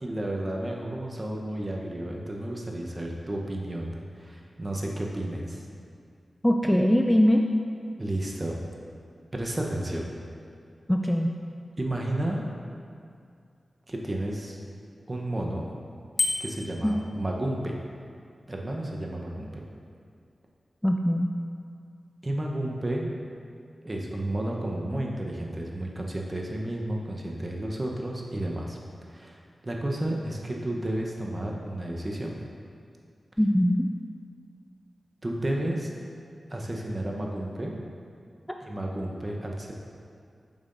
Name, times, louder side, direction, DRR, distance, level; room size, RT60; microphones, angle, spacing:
voice 1, 0.0-5.7 8.0-8.6 9.3-10.1 11.8-12.4 13.9-14.6 15.1-15.7 16.4-17.8 18.5-19.6 22.2-23.1 23.8-28.8 29.1-32.4 35.2-35.9 36.5-37.8 38.6-39.7, right 1 dB, 35° right, -1 dB, 0.9 m, -32 dB
voice 2, 6.4-7.4 10.9-11.3 16.8-16.9 20.8-21.3 33.4-33.9, equal, 5° left, 3 dB, 0.4 m, -21 dB
Bicycle bell, 16.2-16.8, left 3 dB, 70° left, 0.7 m, -28 dB
7.1 x 5.6 x 2.6 m, 2.3 s
cardioid pair, 45°, 0 cm